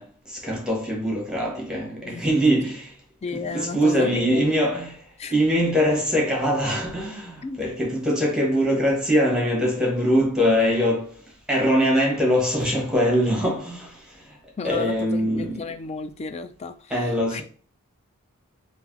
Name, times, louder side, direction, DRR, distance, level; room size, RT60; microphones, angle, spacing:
voice 1, 0.0-2.9 3.5-14.4 14.6-15.6 16.9-17.4, equal, 5° right, 1.2 m, -23 dB
voice 2, 3.2-4.5 5.2-5.3 7.4-7.6 14.6-17.4, left 4 dB, 30° left, 0.3 m, -33 dB
3.3 x 2.6 x 3.7 m
head